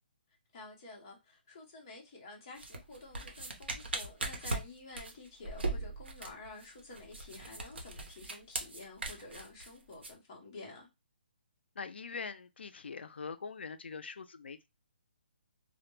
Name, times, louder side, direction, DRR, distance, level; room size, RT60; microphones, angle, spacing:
voice 1, 0.5-10.9, left 3 dB, 25° left, 0.7 m, -50 dB
sound 1, 2.6-10.1, right 2 dB, 85° right, 0.7 m, -39 dB
voice 2, 11.8-14.7, left 5 dB, 85° left, 0.4 m, -43 dB
2.2 x 2.1 x 3.0 m
hypercardioid pair, 175°, 6 cm